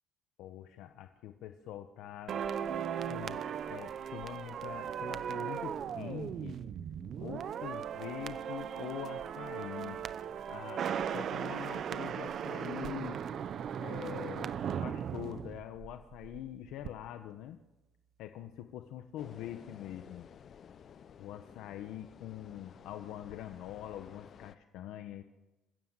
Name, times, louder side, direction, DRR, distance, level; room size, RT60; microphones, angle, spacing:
voice 1, 0.4-2.4 3.1-6.6 7.2-10.0 10.5-13.2 13.8-17.6 18.2-20.2 21.2-25.2, left 11 dB, 70° left, 7 dB, 1.1 m, -44 dB
sound 1, 2.3-16.4 16.7-16.9, right 8 dB, 40° right, 0.8 m, -38 dB
sound 2, 19.2-24.6, left 8 dB, 35° left, 0.7 m, -54 dB
27.5 x 16.0 x 7.5 m, 1.1 s
cardioid pair, 170°, 0 cm